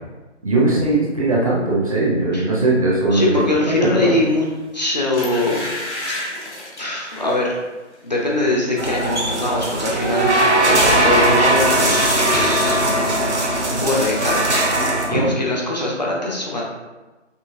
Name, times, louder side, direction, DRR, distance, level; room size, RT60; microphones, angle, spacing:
voice 1, 0.4-3.4 3.8-4.2 15.2-15.3, right 2 dB, 30° right, -5 dB, 0.7 m, -19 dB
voice 2, 3.1-4.5 4.7-5.7 6.8-7.6 8.0-10.3 11.0-12.8 13.7-14.4 15.1-16.6, left 2 dB, 35° left, -3 dB, 0.6 m, -22 dB
sound 1, 4.4-4.6 5.1-7.5 7.9-8.1 8.5-9.2 9.5-9.6, left 1 dB, 65° left, 1.3 m, -31 dB
sound 2, 8.8-15.1, right 1 dB, 65° right, 1.0 m, -18 dB
5.5 x 2.7 x 2.6 m, 1.1 s
figure-of-eight pair, 150°, 37 cm